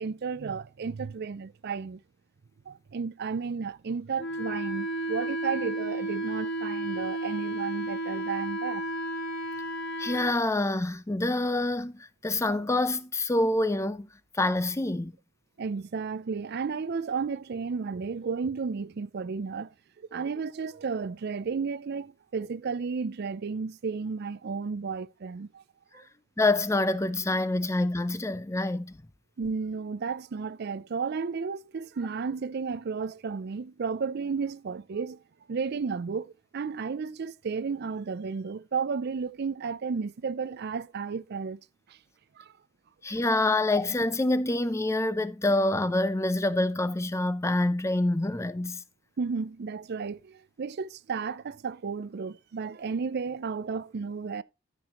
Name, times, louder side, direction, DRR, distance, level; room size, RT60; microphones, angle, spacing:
voice 1, 0.0-2.0 2.7-8.8 15.6-25.6 25.9-26.1 29.4-35.2 35.5-41.6 41.9-42.0 42.4-42.5 49.2-54.4, right 5 dB, 55° right, 0.4 m, -33 dB
Wind instrument woodwind instrument, 4.2-10.4, right 1 dB, 55° left, 2.1 m, -32 dB
voice 2, 10.0-14.1 14.3-15.1 26.4-29.0 43.0-48.8, left 2 dB, 15° left, 0.5 m, -26 dB
13.5 x 6.1 x 3.0 m
head